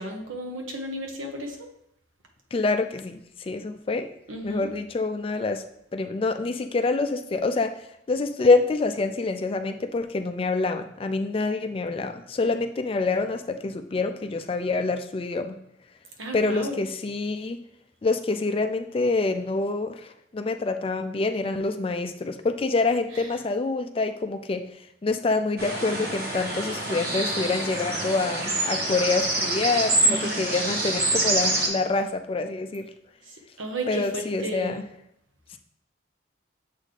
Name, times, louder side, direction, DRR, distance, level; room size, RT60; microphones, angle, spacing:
voice 1, 0.0-1.7 4.3-4.7 16.2-16.8 23.1-23.2 30.0-30.4 33.3-34.8, right 1 dB, 80° right, 2 dB, 1.2 m, -34 dB
voice 2, 2.5-4.1 4.4-5.6 5.9-15.6 16.3-17.6 18.0-24.6 25.0-32.9 33.9-34.8, left 3 dB, 30° left, 8 dB, 0.3 m, -26 dB
sound 1, 25.6-31.7, right 2 dB, 50° right, 1.3 m, -26 dB
7.3 x 4.1 x 3.2 m, 0.77 s
head